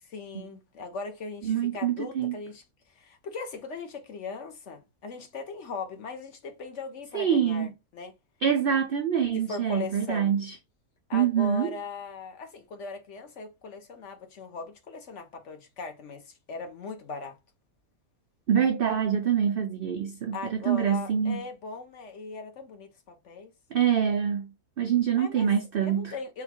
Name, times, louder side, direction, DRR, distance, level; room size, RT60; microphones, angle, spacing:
voice 1, 0.0-2.6 3.0-8.1 9.3-10.3 11.1-17.4 20.3-23.5 25.2-25.5 25.8-26.4, left 4 dB, 60° left, 1.1 m, -39 dB
voice 2, 1.4-2.4 7.1-7.7 8.4-10.5 11.1-11.7 18.5-21.4 23.7-26.1, right 8 dB, 75° right, 0.5 m, -25 dB
4.0 x 2.2 x 4.3 m
omnidirectional pair, 1.5 m